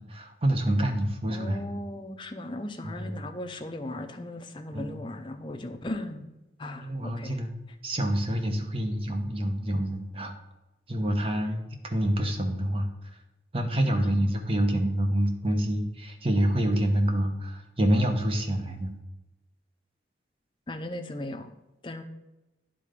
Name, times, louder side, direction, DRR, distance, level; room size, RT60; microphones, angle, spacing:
voice 1, 0.0-1.7 2.8-3.2 4.7-5.0 6.8-7.5 7.8-10.3 10.9-12.9 13.5-18.9, right 1 dB, 30° right, 4 dB, 0.9 m, -27 dB
voice 2, 1.3-6.3 6.6-7.4 13.7-14.1 20.7-21.5 21.8-22.0, left 1 dB, 25° left, 6 dB, 0.6 m, -37 dB
10.0 x 3.8 x 5.1 m, 0.99 s
head